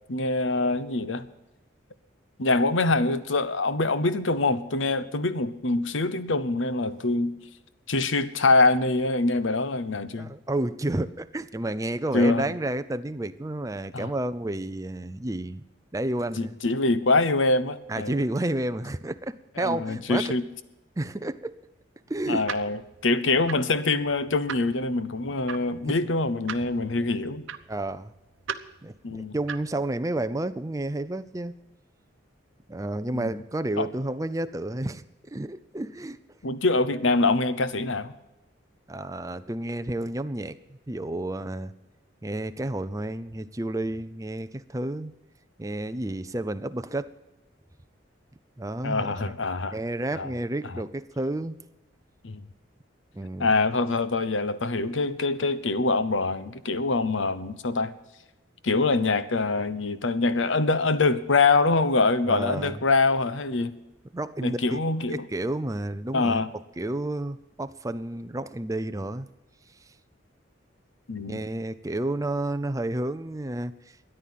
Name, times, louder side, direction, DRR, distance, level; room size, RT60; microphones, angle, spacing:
voice 1, 0.1-1.3 2.4-7.3 7.9-10.3 12.1-12.5 13.9-14.1 16.4-18.2 19.6-20.4 22.3-27.4 29.0-29.3 33.1-33.3 33.8-33.9 36.4-38.1 48.8-49.8 50.1-50.3 50.6-50.7 52.2-52.4 53.4-57.9 58.6-63.7 64.4-65.2 66.1-66.5 71.1-71.4, left 3 dB, 80° left, 14 dB, 0.9 m, -24 dB
voice 2, 10.1-15.6 15.9-16.6 17.9-20.3 21.0-21.5 22.1-22.5 25.9-26.0 27.0-27.1 27.7-28.1 28.8-31.6 32.7-35.0 35.3-36.2 38.9-41.7 42.2-45.1 45.6-47.1 48.6-49.3 49.7-51.6 53.1-53.5 62.2-62.8 64.1-64.8 65.1-66.5 66.8-69.3 71.3-73.7, right 1 dB, 15° right, 11 dB, 0.5 m, -31 dB
sound 1, 22.1-29.8, right 7 dB, 85° right, 0.9 m, -41 dB
13.5 x 10.0 x 7.5 m, 0.98 s
head